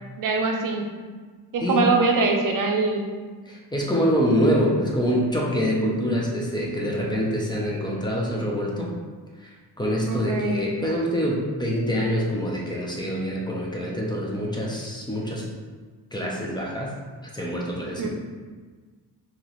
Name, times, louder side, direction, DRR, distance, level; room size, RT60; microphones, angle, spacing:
voice 1, 0.2-0.8 1.5-3.1 5.8-6.2 10.0-10.6 18.0-18.1, right 3 dB, 55° right, 2 dB, 0.6 m, -23 dB
voice 2, 3.4-8.9 9.4-15.4 16.1-16.9 17.3-18.1, equal, 10° left, -3 dB, 0.5 m, -25 dB
4.0 x 2.9 x 3.0 m, 1.4 s
wide cardioid pair, 155°, 39 cm